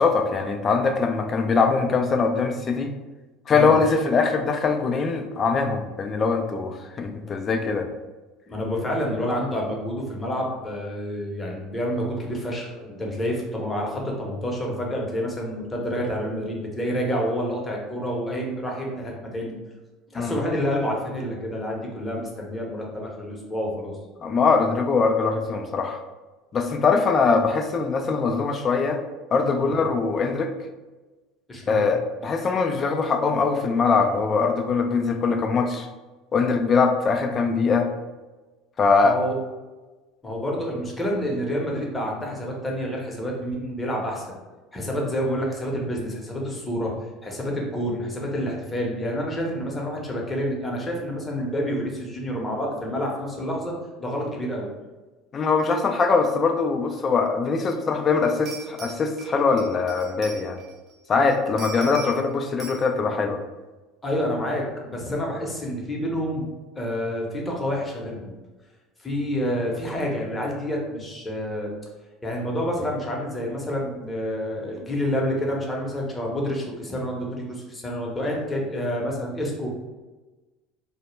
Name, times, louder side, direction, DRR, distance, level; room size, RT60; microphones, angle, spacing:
voice 1, 0.0-2.9 3.5-7.9 20.1-20.4 24.2-26.0 26.5-29.0 29.3-30.5 31.7-35.9 36.3-37.9 38.8-39.2 55.3-60.6 61.1-63.4, left 4 dB, 35° left, 4 dB, 0.3 m, -22 dB
voice 2, 8.5-19.5 20.1-23.9 29.6-29.8 31.5-31.9 39.0-39.3 40.2-44.2 44.7-46.9 47.2-53.7 54.0-54.7 64.0-66.5 66.8-68.3 69.0-71.7 72.2-79.7, equal, 20° left, -1 dB, 0.7 m, -28 dB
sound 1, 57.9-58.0 58.5-60.9 61.3-62.3 62.6-62.9, right 6 dB, 45° right, 0.5 m, -41 dB
2.1 x 2.0 x 3.1 m, 1.2 s
supercardioid pair, 90°, 0 cm